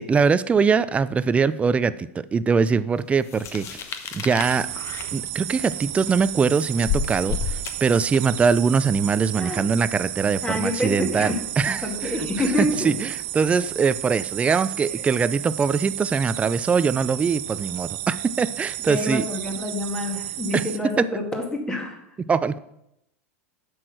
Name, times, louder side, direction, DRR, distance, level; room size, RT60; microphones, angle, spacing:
voice 1, 0.0-4.7 5.1-12.3 12.6-19.2 20.5-20.6 21.0-21.1 22.3-22.6, right 5 dB, 15° right, 15 dB, 0.4 m, -22 dB
sound 1, 3.2-8.4, left 7 dB, 40° left, 1.1 m, -31 dB
sound 2, 4.4-20.8, right 14 dB, 60° right, 0.7 m, -33 dB
voice 2, 10.4-11.4 11.8-13.0 18.9-22.0, left 1 dB, 10° left, 2 dB, 2.1 m, -27 dB
7.6 x 6.3 x 6.1 m, 0.82 s
hypercardioid pair, 115°, 8 cm